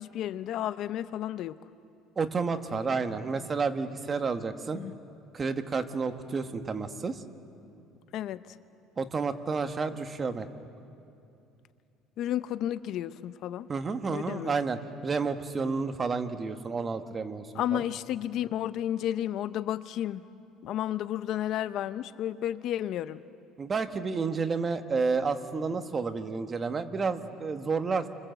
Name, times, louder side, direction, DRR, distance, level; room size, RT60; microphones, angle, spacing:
voice 1, 0.0-1.6 4.7-4.9 8.1-8.4 12.2-13.7 14.1-14.5 17.5-20.2 20.6-23.2, left 11 dB, 55° left, 14 dB, 0.7 m, -32 dB
voice 2, 2.2-4.8 5.3-7.2 9.0-10.5 13.7-17.5 17.7-17.9 23.6-28.1, right 4 dB, 25° right, 8 dB, 1.4 m, -30 dB
29.5 x 25.5 x 7.9 m, 2.6 s
cardioid pair, 130°, 0 cm